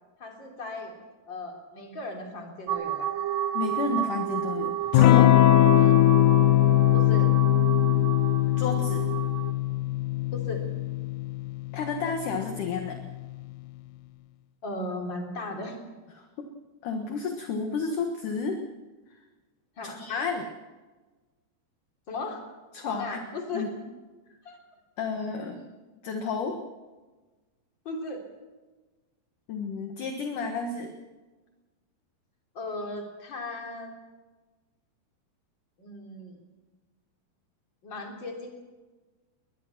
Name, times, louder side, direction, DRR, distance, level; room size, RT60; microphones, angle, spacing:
voice 1, 0.2-0.9 1.3-3.1 5.8-6.0 6.9-7.3 10.3-10.6 14.6-15.8 19.8-20.0 22.1-22.4 22.8-23.7 24.4-24.6 27.9-28.2 32.5-34.0 35.8-36.4 37.8-38.5, left 2 dB, 30° left, 2 dB, 3.7 m, -36 dB
sound 1, 2.7-9.5, right 11 dB, 85° right, 3.2 m, -31 dB
voice 2, 3.5-5.4 8.6-9.1 11.7-13.0 16.2-16.5 16.8-18.6 19.8-20.5 22.7-23.2 23.5-23.7 25.0-25.7 26.0-26.6 29.5-30.9, left 4 dB, 60° left, 4 dB, 2.6 m, -31 dB
Electric guitar / Strum, 4.9-13.2, left 15 dB, 85° left, 1.7 m, -21 dB
21.5 x 21.0 x 6.0 m, 1.2 s
omnidirectional pair, 4.7 m